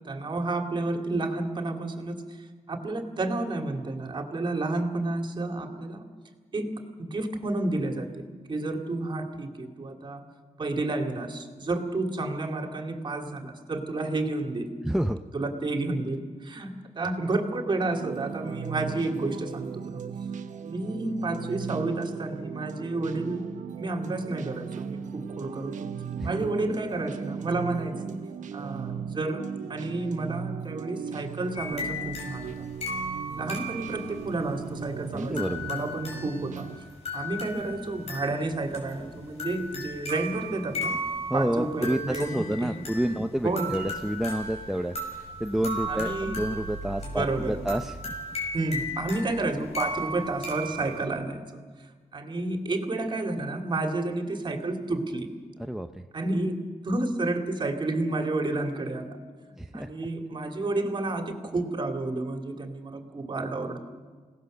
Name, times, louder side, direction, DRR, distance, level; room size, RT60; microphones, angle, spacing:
voice 1, 0.1-2.2 2.7-6.1 6.5-6.7 7.0-10.2 10.6-14.7 15.3-16.2 16.5-19.8 20.6-23.4 23.8-25.9 26.2-28.2 28.5-29.4 29.7-32.5 33.4-36.7 37.1-41.0 41.3-42.9 43.1-43.8 45.9-46.4 47.0-47.6 48.5-51.4 52.1-55.3 56.1-56.6 56.8-59.1 59.7-63.8, right 2 dB, 40° right, 4 dB, 2.5 m, -30 dB
voice 2, 14.8-15.2 26.2-26.3 35.1-35.7 41.3-44.9 45.4-48.0 55.7-55.9 59.6-59.9, equal, 5° right, 5 dB, 0.7 m, -29 dB
sound 1, 17.9-36.8, right 7 dB, 80° right, 1.0 m, -38 dB
sound 2, 31.6-51.0, equal, 55° left, 5.7 m, -36 dB
28.5 x 18.0 x 6.7 m, 1.5 s
wide cardioid pair, 120°, 13 cm